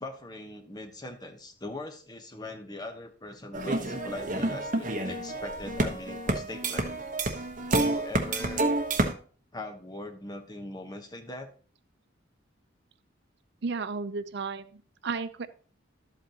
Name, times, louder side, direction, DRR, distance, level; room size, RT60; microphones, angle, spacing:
voice 1, 0.0-7.0 7.7-8.7 9.5-11.5, left 2 dB, 20° left, 5 dB, 1.0 m, -41 dB
sound 1, 3.5-9.1, right 2 dB, 45° right, 1.1 m, -29 dB
voice 2, 13.6-15.5, right 4 dB, 60° right, 12 dB, 0.6 m, -33 dB
12.0 x 8.1 x 2.9 m, 0.42 s
head